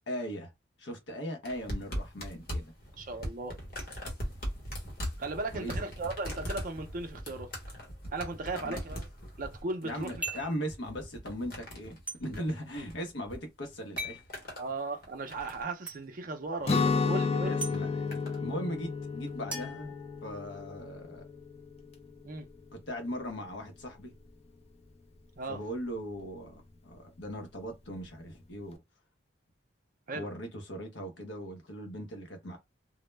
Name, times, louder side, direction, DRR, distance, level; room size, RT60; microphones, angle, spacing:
voice 1, 0.1-0.5 0.8-2.7 5.5-5.8 8.5-8.8 9.8-14.2 17.4-19.9 20.2-21.2 22.7-24.1 25.5-28.8 30.1-32.6, equal, 70° left, 0.7 m, -39 dB
sound 1, 1.4-13.4 13.7-14.7 15.0-15.7 16.7-17.0 17.7-18.4 19.3-19.4, equal, 50° left, 1.0 m, -40 dB
voice 2, 3.0-3.6 5.2-7.5 8.1-9.1 9.4-10.1 14.6-17.5 22.2-22.5 25.4-25.6 30.1-30.3, right 3 dB, 45° right, 0.5 m, -36 dB
sound 2, 10.2-10.6 12.1-12.2 14.0-14.3 15.9-16.0 17.6-17.8 19.5-20.6, right 2 dB, 5° right, 0.7 m, -38 dB
Guitar, 16.6-22.5, left 4 dB, 30° left, 0.4 m, -32 dB
2.1 x 2.0 x 3.2 m
head